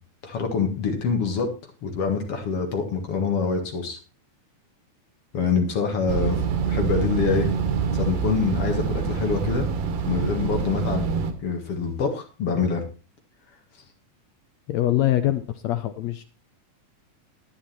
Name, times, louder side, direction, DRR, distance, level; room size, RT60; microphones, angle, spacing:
voice 1, 0.2-1.5 1.8-4.0 5.3-7.5 7.9-9.7 10.1-11.1 11.4-12.8, left 5 dB, 50° left, 5 dB, 2.4 m, -25 dB
sound 1, 6.1-11.3, right 6 dB, 90° right, 3.1 m, -25 dB
voice 2, 14.7-16.2, left 13 dB, 75° left, 10 dB, 1.7 m, -23 dB
11.5 x 10.0 x 4.3 m, 0.33 s
omnidirectional pair, 3.7 m